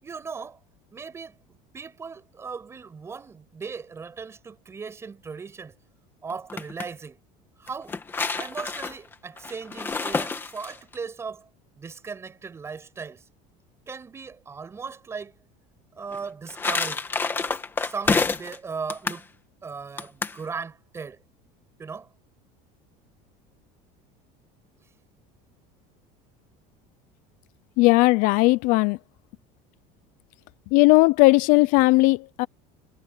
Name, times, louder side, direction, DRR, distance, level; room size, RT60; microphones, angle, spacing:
voice 1, 0.0-0.6 0.9-1.4 1.7-5.7 6.2-7.2 7.6-8.0 8.4-11.5 11.8-13.2 13.9-15.3 16.0-17.1 17.8-19.3 19.6-21.2 21.8-22.1, right 5 dB, 15° right, 5.9 m, -37 dB
sound 1, 6.3-6.9 7.7-11.0 16.1-18.6 18.9-19.2 20.0-20.4, left 4 dB, 10° left, 2.1 m, -28 dB
voice 2, 27.8-29.0 30.7-32.5, left 23 dB, 50° left, 0.5 m, -17 dB
cardioid pair, 175°, 17 cm